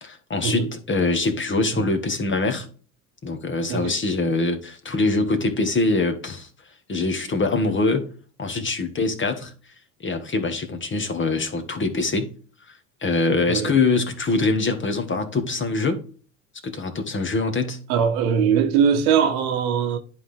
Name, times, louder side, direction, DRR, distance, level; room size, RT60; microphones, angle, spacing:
voice 1, 0.0-2.7 3.2-6.5 6.9-8.1 8.4-9.5 10.0-12.3 12.7-12.8 13.0-16.0 16.6-17.8, left 3 dB, 25° left, 1.6 m, -23 dB
voice 2, 17.9-20.0, right 7 dB, 70° right, 1.4 m, -21 dB
10.5 x 3.9 x 3.4 m
hypercardioid pair, 90°, 44 cm